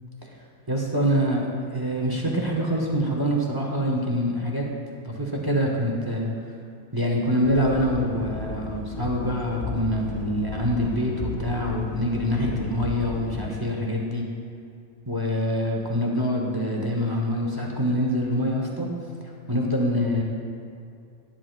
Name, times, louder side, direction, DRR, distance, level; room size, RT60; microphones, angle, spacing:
voice 1, 0.7-4.6 5.0-6.3 6.9-14.2 15.1-18.9 19.5-20.2, equal, 20° right, -1 dB, 0.9 m, -25 dB
sound 1, 7.4-13.5, left 3 dB, 35° left, 0.8 m, -35 dB
11.5 x 11.0 x 2.5 m, 2.4 s
omnidirectional pair, 1.5 m